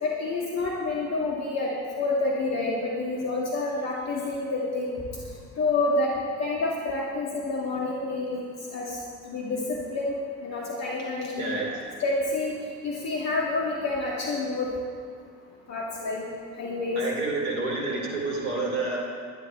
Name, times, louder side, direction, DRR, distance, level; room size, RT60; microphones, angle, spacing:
voice 1, 0.0-5.0 5.6-6.1 6.4-8.4 8.7-9.0 9.3-10.1 10.4-11.6 12.0-12.5 12.8-14.7 15.7-16.2 16.6-17.0, left 3 dB, 40° left, -4 dB, 2.4 m, -28 dB
voice 2, 11.4-11.7 16.9-19.0, right 3 dB, 80° right, -2 dB, 3.0 m, -29 dB
22.0 x 10.5 x 3.4 m, 2.1 s
figure-of-eight pair, 60°, 43 cm